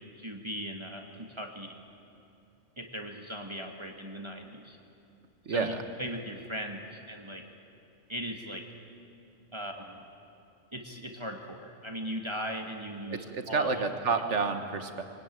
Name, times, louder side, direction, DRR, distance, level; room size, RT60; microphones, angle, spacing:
voice 1, 0.0-1.7 2.8-4.8 5.5-7.4 8.1-8.6 9.5-10.0 10.7-13.8, equal, 25° right, 2 dB, 1.5 m, -38 dB
voice 2, 5.4-5.8 13.1-15.0, right 4 dB, 65° right, 7 dB, 1.7 m, -29 dB
23.0 x 19.0 x 9.2 m, 2.6 s
omnidirectional pair, 1.3 m